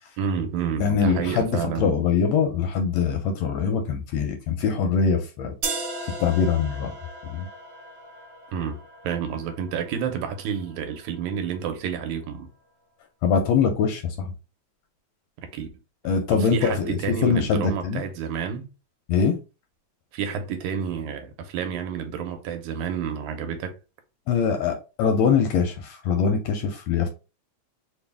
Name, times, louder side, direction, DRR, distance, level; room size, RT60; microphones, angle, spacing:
voice 1, 0.2-1.9 8.5-8.8 9.0-12.5 15.5-15.7 16.3-18.7 20.1-23.8, right 7 dB, 80° right, 2.1 m, -29 dB
voice 2, 0.8-5.5 6.2-6.9 7.3-7.5 13.2-14.3 16.0-18.0 19.1-19.4 24.3-27.1, left 6 dB, 80° left, 1.6 m, -23 dB
sound 1, 5.6-11.6, right 3 dB, 65° right, 1.1 m, -37 dB
4.7 x 2.2 x 3.4 m
omnidirectional pair, 3.4 m